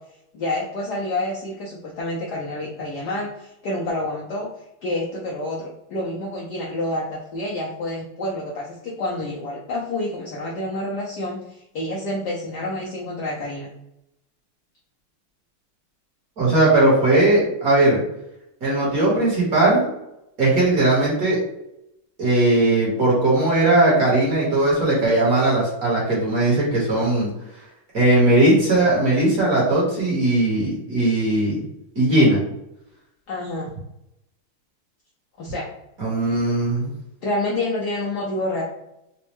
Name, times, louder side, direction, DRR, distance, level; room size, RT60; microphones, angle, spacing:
voice 1, 0.3-4.5 4.8-13.7 33.3-33.7 35.4-35.7 37.2-38.6, left 1 dB, 70° left, -4 dB, 0.9 m, -28 dB
voice 2, 16.4-18.0 18.6-19.9 20.4-21.4 22.2-27.3 27.9-31.6 31.9-32.4 36.0-36.9, right 2 dB, 50° right, -5 dB, 1.4 m, -18 dB
4.1 x 2.2 x 2.9 m, 0.84 s
omnidirectional pair, 2.4 m